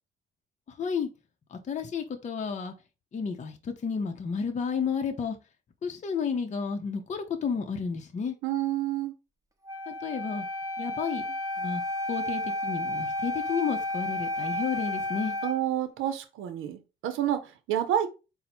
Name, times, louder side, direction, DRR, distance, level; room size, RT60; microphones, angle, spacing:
voice 1, 0.8-1.1 1.5-2.7 3.1-5.4 5.8-8.3 9.9-10.4 10.8-11.2 11.6-11.8 12.1-15.4, left 6 dB, 35° left, 0.6 m, -31 dB
voice 2, 8.4-9.1 15.4-18.1, right 11 dB, 90° right, 0.6 m, -29 dB
Wind instrument woodwind instrument, 9.6-15.6, left 1 dB, 15° right, 0.9 m, -32 dB
4.1 x 2.0 x 4.2 m
cardioid pair, 90°, 20 cm